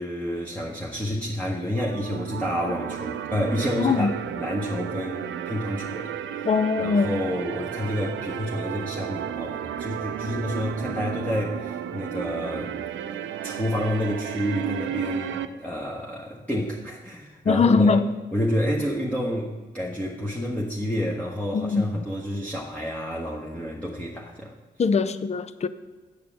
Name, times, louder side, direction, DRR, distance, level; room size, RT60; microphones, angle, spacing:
voice 1, 0.0-6.5 6.8-12.8 13.4-18.0 18.3-24.6, equal, 5° left, 1.3 m, -29 dB
sound 1, 1.8-15.5, right 9 dB, 75° right, 0.5 m, -33 dB
voice 2, 3.8-4.1 6.4-7.2 17.4-18.1 21.5-21.9 24.8-25.7, left 4 dB, 35° left, 0.5 m, -21 dB
8.1 x 5.0 x 7.2 m
supercardioid pair, 45°, 20 cm